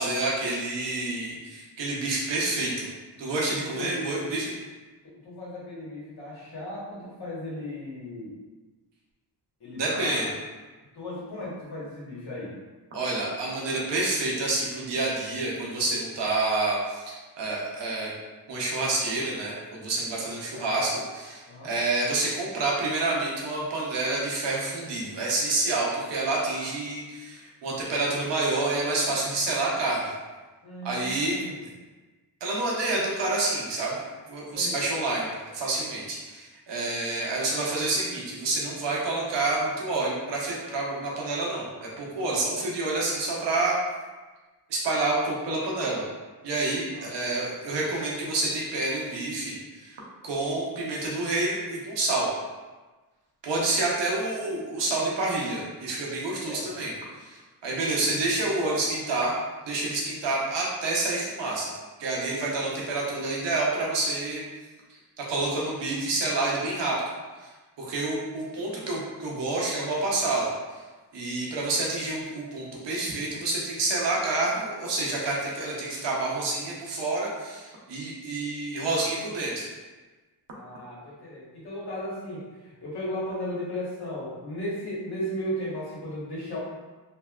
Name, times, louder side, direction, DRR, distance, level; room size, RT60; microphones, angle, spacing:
voice 1, 0.0-2.9 3.2-4.5 9.7-10.3 12.9-18.1 18.5-30.1 30.8-31.4 32.4-43.8 44.7-46.0 46.4-52.3 53.4-59.3 59.7-61.7 62.0-64.4 64.9-67.0 67.4-67.5 67.8-70.5 71.1-79.6, right 2 dB, 80° right, -4 dB, 0.9 m, -28 dB
voice 2, 3.6-4.4 5.2-8.4 9.6-10.3 10.9-12.6 20.5-20.7 21.4-21.8 30.6-31.6 34.5-34.8 46.9-47.6 56.4-56.9 80.5-86.6, equal, 60° left, -6 dB, 1.3 m, -36 dB
3.1 x 2.6 x 2.3 m, 1.3 s
cardioid pair, 85°, 42 cm